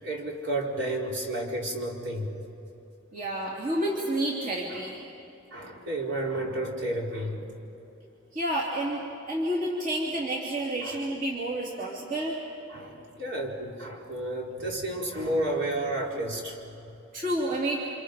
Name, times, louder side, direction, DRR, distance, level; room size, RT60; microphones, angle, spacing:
voice 1, 0.0-2.3 4.7-4.8 5.5-7.4 10.8-11.0 11.8-11.9 12.7-16.6, right 1 dB, 60° right, -2 dB, 4.2 m, -31 dB
voice 2, 3.1-5.0 8.3-9.0 9.3-12.4 17.1-17.8, right 1 dB, 40° right, -3 dB, 2.9 m, -29 dB
29.5 x 27.5 x 5.2 m, 2.9 s
head